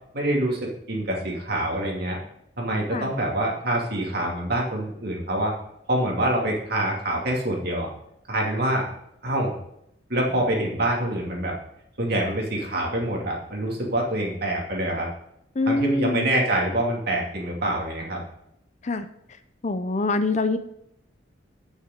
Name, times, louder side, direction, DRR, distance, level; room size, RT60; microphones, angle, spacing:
voice 1, 0.1-2.2 2.6-5.5 5.9-7.9 8.3-8.9 9.2-9.5 10.1-11.5 12.0-15.1 15.7-18.2, right 1 dB, 55° right, -1 dB, 2.5 m, -25 dB
voice 2, 15.6-16.3 18.8-19.1 19.6-20.6, left 2 dB, 40° left, 10 dB, 0.6 m, -24 dB
9.0 x 6.6 x 5.1 m, 0.77 s
head